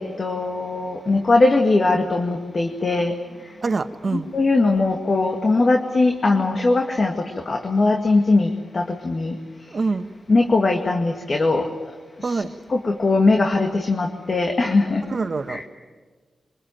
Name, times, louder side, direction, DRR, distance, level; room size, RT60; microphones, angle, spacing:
voice 1, 0.0-3.1 4.1-9.4 10.3-11.7 12.2-12.4 12.7-15.0 15.5-15.6, left 3 dB, 45° left, 3 dB, 2.0 m, -20 dB
voice 2, 3.6-4.3 9.7-10.1 12.2-12.5 15.1-15.6, right 4 dB, 50° right, 9 dB, 1.4 m, -25 dB
24.0 x 22.0 x 9.1 m, 1.4 s
cardioid pair, 60°, 0 cm